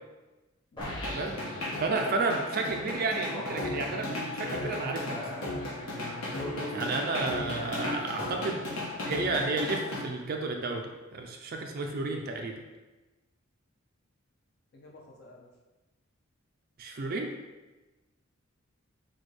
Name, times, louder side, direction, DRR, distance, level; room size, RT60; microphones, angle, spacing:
sound 1, 0.8-10.0, left 2 dB, 75° left, 1.0 m, -36 dB
sound 2, 0.8-9.1, equal, 20° left, 1.0 m, -41 dB
voice 1, 1.0-5.2 6.7-8.6 9.0-12.6 16.8-17.3, right 3 dB, 45° right, 3 dB, 0.4 m, -32 dB
voice 2, 14.7-15.5, left 1 dB, 50° left, -1 dB, 0.5 m, -53 dB
6.0 x 2.2 x 3.2 m, 1.1 s
head